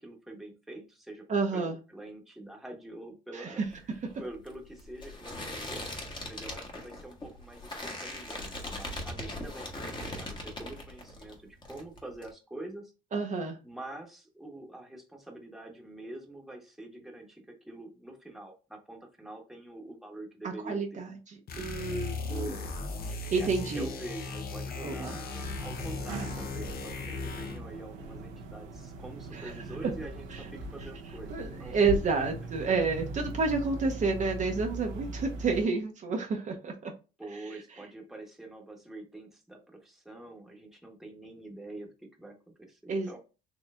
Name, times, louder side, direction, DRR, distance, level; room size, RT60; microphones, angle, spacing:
voice 1, 0.0-1.3 1.5-3.6 3.9-12.9 13.6-21.0 22.3-22.8 23.3-32.0 37.2-43.2, right 2 dB, ahead, 1 dB, 1.2 m, -45 dB
voice 2, 1.3-1.8 3.3-3.7 13.1-13.6 20.4-21.2 21.6-22.5 23.3-23.9 24.8-25.2 29.3-29.5 30.3-30.4 31.3-36.9 37.3-37.6 42.9-43.2, right 4 dB, 40° right, 2 dB, 0.8 m, -30 dB
sound 1, 3.6-11.3 11.6-12.3, left 1 dB, 25° left, 1.4 m, -40 dB
sound 2, 21.5-27.7, left 3 dB, 55° left, 0.8 m, -37 dB
sound 3, 25.3-35.6, right 2 dB, 80° right, 0.9 m, -40 dB
4.4 x 3.0 x 2.5 m, 0.31 s
supercardioid pair, 80°, 19 cm